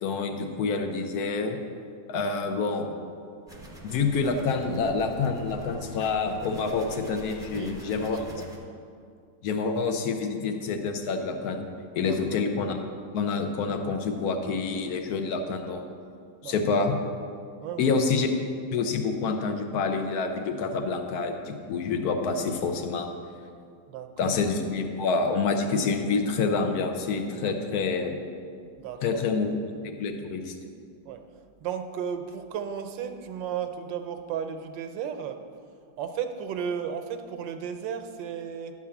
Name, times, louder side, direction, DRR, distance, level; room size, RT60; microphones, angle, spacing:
voice 1, 0.0-1.6 2.1-2.9 3.8-8.2 9.4-11.6 12.0-12.8 13.1-15.8 16.4-16.9 17.8-18.3 18.7-23.1 24.2-28.2 29.0-29.5 29.8-30.5, left 4 dB, 60° left, 6 dB, 1.2 m, -27 dB
sound 1, 3.5-8.6, left 1 dB, 5° right, 0.9 m, -44 dB
voice 2, 7.5-8.5 12.1-12.2 16.4-16.6 17.6-17.9 23.9-24.3 28.8-29.2 31.1-31.2 31.6-35.4 36.0-38.7, right 8 dB, 80° right, 7 dB, 1.3 m, -34 dB
11.0 x 4.9 x 7.0 m, 2.3 s
omnidirectional pair, 2.0 m